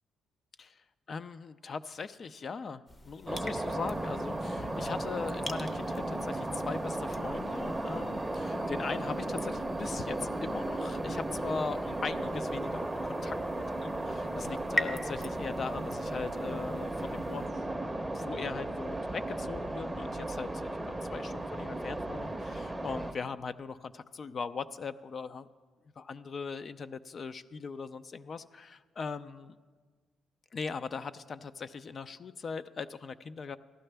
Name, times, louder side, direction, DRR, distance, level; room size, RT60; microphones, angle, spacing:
voice 1, 1.1-17.5 18.1-20.8 21.1-25.5 26.0-29.6 30.5-33.6, left 5 dB, 45° left, 13 dB, 0.3 m, -40 dB
sound 1, 2.9-17.5, left 1 dB, 25° left, 0.7 m, -44 dB
sound 2, 3.2-23.1, right 1 dB, 10° right, 0.6 m, -35 dB
15.0 x 11.5 x 3.3 m, 1.4 s
cardioid pair, 90°, 0 cm